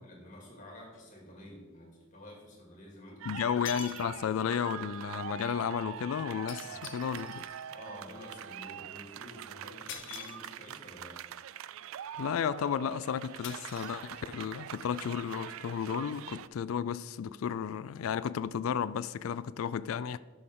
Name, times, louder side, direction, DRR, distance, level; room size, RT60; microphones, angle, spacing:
voice 1, 0.0-3.4 6.6-6.8 7.6-11.2, left 1 dB, 35° left, 2.3 m, -50 dB
sound 1, 0.9-1.0 3.1-3.2 3.6-4.5 6.5-7.7 9.9-10.9 13.4-14.5, left 8 dB, 60° left, 0.8 m, -46 dB
sound 2, 3.2-16.5, right 10 dB, 75° right, 0.3 m, -44 dB
voice 2, 3.3-7.4 12.2-20.2, left 8 dB, 80° left, 0.3 m, -33 dB
11.0 x 6.4 x 3.7 m
head